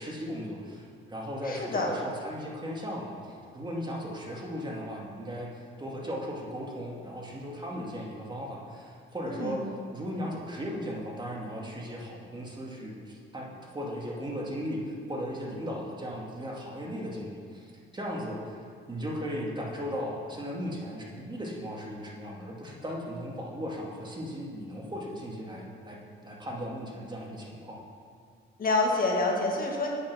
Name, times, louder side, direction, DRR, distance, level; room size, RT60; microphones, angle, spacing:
voice 1, 0.0-9.6 9.9-18.6 18.9-27.8, equal, 20° right, -2 dB, 2.3 m, -37 dB
voice 2, 1.4-1.9 9.2-9.6 28.6-29.9, left 2 dB, 45° left, 0 dB, 1.9 m, -27 dB
8.8 x 8.7 x 6.2 m, 2.2 s
cardioid pair, 90°, 20 cm